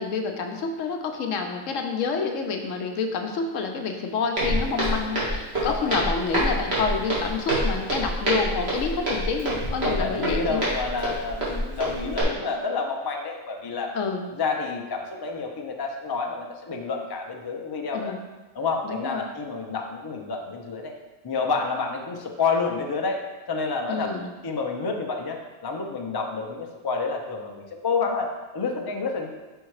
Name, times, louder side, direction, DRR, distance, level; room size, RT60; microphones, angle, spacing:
voice 1, 0.0-10.6 13.9-14.3 17.9-18.2 18.8-19.2 23.9-24.3, left 4 dB, 75° left, 4 dB, 1.1 m, -28 dB
Walk footsteps, 4.4-12.2, right 1 dB, 50° right, 2.0 m, -27 dB
voice 2, 5.6-6.1 9.8-13.9 14.3-18.1 18.5-20.9 21.2-23.2 23.5-24.1 24.4-29.3, left 4 dB, 35° left, 2 dB, 0.4 m, -29 dB
5.6 x 4.5 x 4.7 m, 1.2 s
omnidirectional pair, 1.4 m